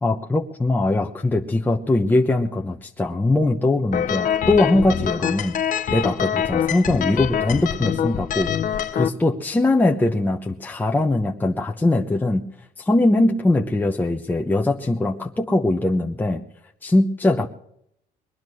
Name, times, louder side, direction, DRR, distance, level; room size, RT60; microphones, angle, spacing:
voice 1, 0.0-5.5 5.9-8.5 8.9-12.4 12.8-16.4 16.8-17.5, left 2 dB, 10° left, 2 dB, 0.9 m, -21 dB
sound 1, 3.9-9.1, left 9 dB, 50° left, 0.9 m, -24 dB
21.0 x 10.5 x 6.4 m, 0.71 s
cardioid pair, 110°, 17 cm